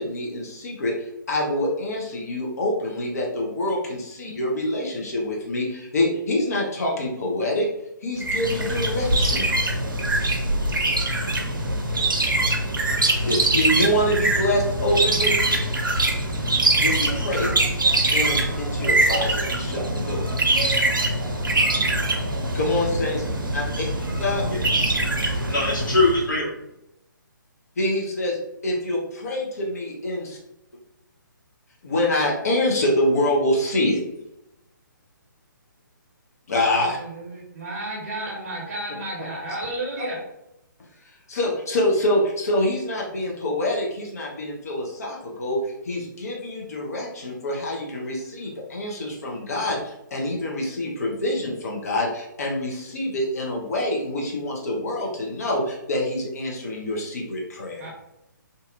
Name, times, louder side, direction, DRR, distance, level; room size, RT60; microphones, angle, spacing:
voice 1, 0.0-7.7 8.0-9.6 13.1-15.4 16.8-17.5 18.1-20.2 22.5-23.6 24.2-24.4 27.8-28.4 28.6-30.4 31.8-34.0 36.5-37.0 41.3-57.8, left 1 dB, 50° left, -2 dB, 0.8 m, -26 dB
sound 1, 8.2-26.2, right 2 dB, 75° right, 0.5 m, -23 dB
voice 2, 24.5-24.9 25.5-26.5, left 2 dB, 70° left, -6 dB, 1.4 m, -22 dB
voice 3, 36.8-40.2 57.8-57.9, right 1 dB, 45° right, -1 dB, 0.9 m, -32 dB
2.7 x 2.4 x 2.5 m, 0.85 s
figure-of-eight pair, 135°, 11 cm